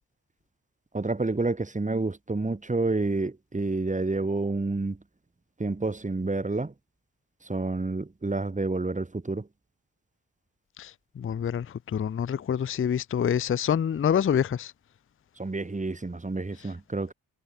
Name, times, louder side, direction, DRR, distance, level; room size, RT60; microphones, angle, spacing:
voice 1, 0.9-5.0 5.6-6.7 7.4-9.5 15.4-17.1, right 3 dB, 20° right, 1.3 m, -29 dB
voice 2, 11.2-14.7, left 8 dB, 30° left, 0.4 m, -26 dB
cardioid pair, 80°, 41 cm